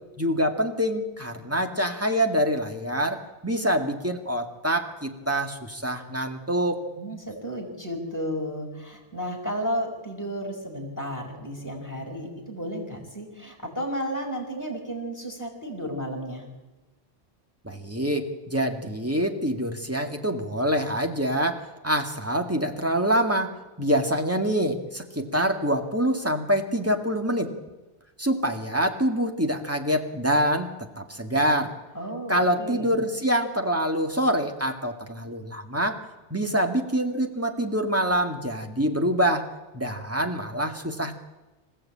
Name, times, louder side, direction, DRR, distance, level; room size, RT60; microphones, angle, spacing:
voice 1, 0.2-6.8 17.6-23.5 23.8-27.5 28.2-30.7 31.0-31.8 32.3-36.0 36.3-39.5 39.7-41.2, equal, 15° right, 4 dB, 2.0 m, -25 dB
voice 2, 7.0-16.4 31.9-32.9, equal, 15° left, 0 dB, 5.0 m, -33 dB
26.5 x 15.5 x 8.7 m, 1.1 s
omnidirectional pair, 1.1 m